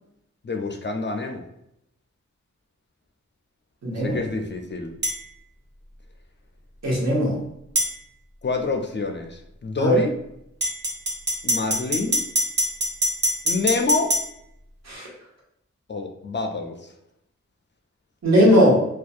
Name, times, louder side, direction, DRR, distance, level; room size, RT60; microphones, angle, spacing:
voice 1, 0.4-1.4 3.9-4.9 8.4-10.1 11.4-12.2 13.4-14.1 15.9-16.9, left 3 dB, 40° left, 4 dB, 0.4 m, -27 dB
voice 2, 3.8-4.2 6.8-7.4 9.8-10.0 14.9-15.1 18.2-18.8, equal, 65° right, -4 dB, 1.0 m, -18 dB
sound 1, 5.0-5.2 7.8-7.9 10.6-14.2, right 1 dB, 35° right, 0.7 m, -23 dB
2.5 x 2.2 x 2.4 m, 0.77 s
cardioid pair, 45°, 30 cm